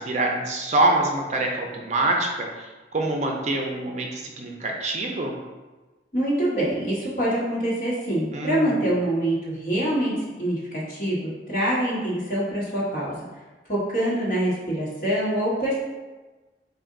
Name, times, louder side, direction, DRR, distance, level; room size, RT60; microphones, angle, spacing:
voice 1, 0.0-2.5 2.9-5.3 8.3-8.8, right 2 dB, 40° right, 1 dB, 0.5 m, -25 dB
voice 2, 6.1-13.2 13.7-15.8, right 1 dB, 50° left, -7 dB, 1.4 m, -25 dB
4.2 x 2.6 x 3.7 m, 1.2 s
head